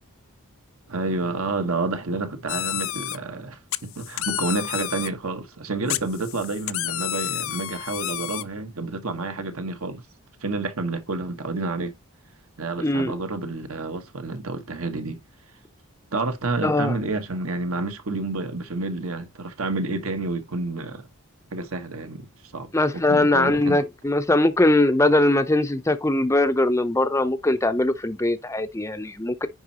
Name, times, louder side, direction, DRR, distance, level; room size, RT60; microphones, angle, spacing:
voice 1, 0.9-10.0 10.4-11.9 12.6-15.2 16.1-21.0 21.5-22.3 22.5-23.8, right 3 dB, 70° right, 1.3 m, -29 dB
sound 1, 2.5-3.2 3.7-5.1 5.9-8.4, left 14 dB, 60° left, 0.5 m, -30 dB
voice 2, 12.8-13.1 16.6-17.0 22.7-29.5, left 2 dB, 15° left, 0.5 m, -21 dB
9.7 x 4.4 x 2.9 m
head